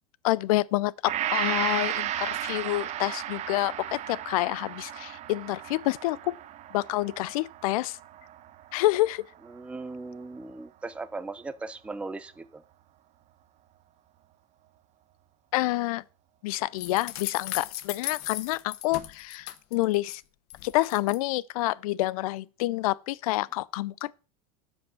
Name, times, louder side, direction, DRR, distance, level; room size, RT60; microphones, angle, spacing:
voice 1, 0.2-6.3 6.7-8.0 8.7-9.3 15.5-16.0 16.4-20.2 20.6-24.1, left 18 dB, 75° left, 0.5 m, -28 dB
Gong, 1.0-9.4 9.8-9.9, right 12 dB, 40° right, 0.8 m, -34 dB
voice 2, 9.5-12.6, right 3 dB, 5° right, 0.5 m, -38 dB
sound 1, 16.8-20.2 20.5-21.2, left 15 dB, 60° left, 1.0 m, -37 dB
11.0 x 5.3 x 6.1 m
supercardioid pair, 120°, 19 cm